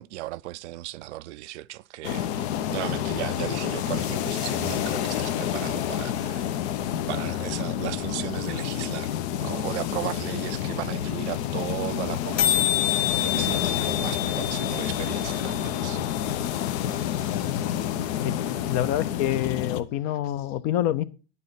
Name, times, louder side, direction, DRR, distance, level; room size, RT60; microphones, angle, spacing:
voice 1, 0.0-6.6 7.1-12.7 13.2-16.0, right 17 dB, 65° right, 0.5 m, -36 dB
sound 1, 2.0-19.8, left 10 dB, 60° left, 0.9 m, -29 dB
sound 2, 10.3-10.4 10.6-10.7 10.8-11.1 11.3-11.4 11.6-11.8 12.1-12.2 12.4-16.3, left 12 dB, 85° left, 0.8 m, -28 dB
voice 2, 17.3-17.7 18.2-21.0, left 12 dB, 40° left, 0.6 m, -28 dB
10.0 x 7.6 x 3.9 m
supercardioid pair, 135°, 37 cm